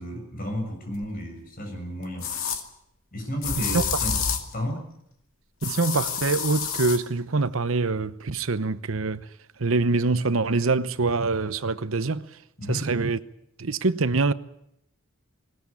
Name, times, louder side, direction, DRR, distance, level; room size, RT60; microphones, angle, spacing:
voice 1, 0.0-2.3 3.1-4.2 4.5-4.8 12.6-12.8, equal, 45° left, 7.0 m, -32 dB
sound 1, 1.0-1.1 2.2-2.6 3.4-4.5 5.6-7.0, left 6 dB, 75° left, 2.3 m, -28 dB
voice 2, 5.6-9.2 9.6-12.2 12.7-13.2 13.6-14.3, right 3 dB, 75° right, 0.9 m, -24 dB
20.5 x 19.5 x 8.5 m
head